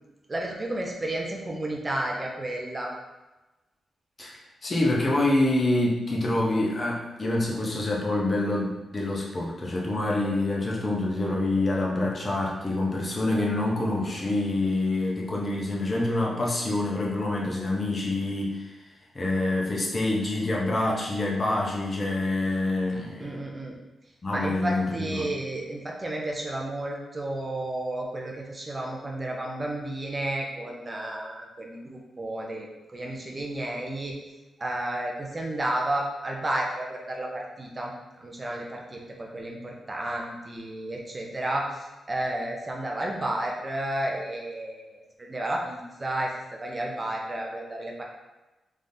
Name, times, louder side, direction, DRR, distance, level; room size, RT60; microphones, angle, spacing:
voice 1, 0.3-2.9 23.2-23.8 24.3-34.1 34.6-37.9 38.2-41.6 42.1-45.0 45.3-48.0, right 1 dB, 25° right, -1 dB, 0.7 m, -32 dB
voice 2, 4.2-18.8 19.1-23.3 24.2-25.3, left 2 dB, 30° left, -3 dB, 0.8 m, -26 dB
3.6 x 3.5 x 2.7 m, 1.1 s
wide cardioid pair, 125°, 0 cm